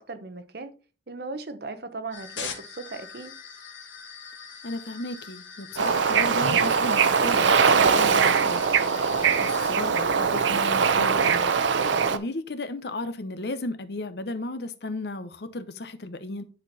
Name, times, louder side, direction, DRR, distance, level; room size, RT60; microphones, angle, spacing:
voice 1, 0.1-0.7 1.1-3.4, right 3 dB, 60° right, 0.9 m, -37 dB
sound 1, 2.1-9.7, left 6 dB, 90° left, 1.6 m, -42 dB
voice 2, 4.6-8.7 8.9-11.5 12.1-16.4, left 2 dB, 60° left, 0.8 m, -35 dB
Bird / Ocean, 5.8-12.2, right 6 dB, 85° right, 0.6 m, -21 dB
9.8 x 4.5 x 4.0 m
head